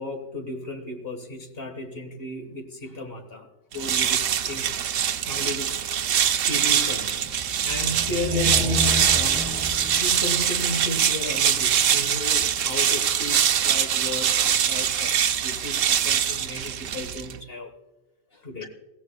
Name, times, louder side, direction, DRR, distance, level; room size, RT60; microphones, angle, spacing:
voice 1, 0.0-4.8 5.2-5.8 6.5-7.3 7.6-9.6 10.0-17.7 18.3-18.7, left 1 dB, 50° left, 5 dB, 1.6 m, -34 dB
sound 1, 3.7-17.4, right 9 dB, 90° right, 1.1 m, -23 dB
sound 2, 7.2-11.6, left 2 dB, ahead, 1.3 m, -32 dB
20.0 x 16.0 x 2.2 m, 1.1 s
omnidirectional pair, 1.3 m